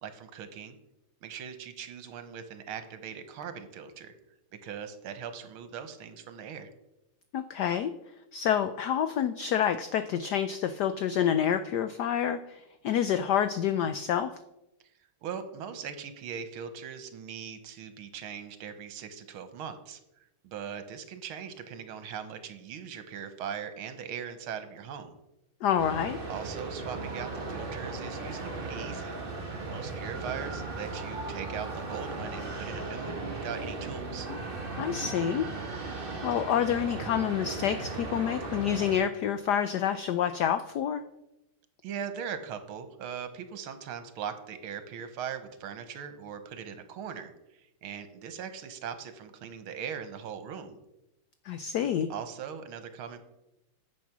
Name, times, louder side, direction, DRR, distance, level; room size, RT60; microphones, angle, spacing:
voice 1, 0.0-0.8 1.2-4.1 4.6-6.7 13.8-14.0 15.2-20.0 20.4-25.2 26.3-29.2 29.7-34.3 41.8-50.8 52.1-53.2, right 7 dB, 75° right, 10 dB, 1.9 m, -40 dB
voice 2, 7.3-7.9 8.3-14.3 25.6-26.2 34.8-35.5 35.8-35.9 36.2-41.0 51.4-52.1, left 9 dB, 85° left, 11 dB, 0.9 m, -28 dB
sound 1, 25.8-39.0, right 3 dB, 30° right, 1.3 m, -37 dB
9.5 x 7.4 x 6.0 m, 0.89 s
omnidirectional pair, 2.4 m